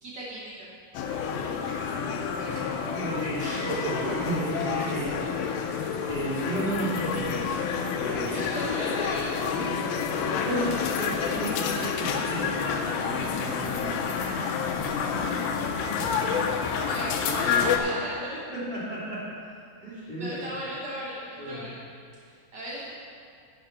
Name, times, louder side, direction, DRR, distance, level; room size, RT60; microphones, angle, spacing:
voice 1, 0.0-0.7 3.4-4.4 8.3-9.3 16.9-18.4 19.9-21.8 22.5-22.9, right 1 dB, 65° right, -6 dB, 1.0 m, -35 dB
sound 1, 0.9-17.8, left 6 dB, 85° left, 2.6 m, -29 dB
voice 2, 1.7-2.1 2.4-2.6 2.8-3.5 4.0-5.6 6.0-7.5 7.9-8.4 10.1-12.6 13.0-14.2 16.0-16.3 18.3-19.3 19.8-20.4 21.4-21.7, right 1 dB, 15° right, -7 dB, 2.5 m, -34 dB
11.0 x 11.0 x 4.1 m, 2.3 s
omnidirectional pair, 4.1 m